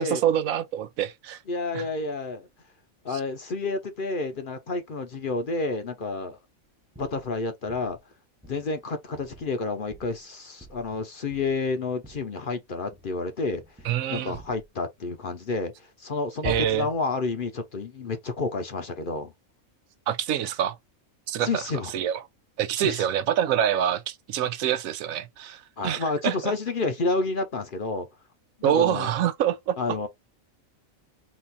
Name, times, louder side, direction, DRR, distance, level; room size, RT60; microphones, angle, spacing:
voice 1, 0.0-1.4 1.7-1.9 13.8-14.4 16.4-16.9 20.1-20.8 21.3-21.6 21.9-22.2 22.6-26.5 28.6-29.8, right 10 dB, 85° right, 1.1 m, -26 dB
voice 2, 1.5-2.5 3.0-6.4 7.0-8.0 8.5-13.6 14.1-19.3 21.4-21.9 22.8-23.0 25.8-28.1 28.6-29.1 29.8-30.1, left 3 dB, 45° left, 0.8 m, -30 dB
sound 1, 7.0-7.3 7.7-8.0 8.4-8.7 9.1-9.6 9.9-10.2 10.6-11.0 11.3-11.7 12.0-12.3 12.8-13.2 13.5-14.0 14.3-14.7 16.4-17.0, right 1 dB, 10° right, 0.6 m, -45 dB
4.2 x 2.5 x 4.0 m
omnidirectional pair, 1.4 m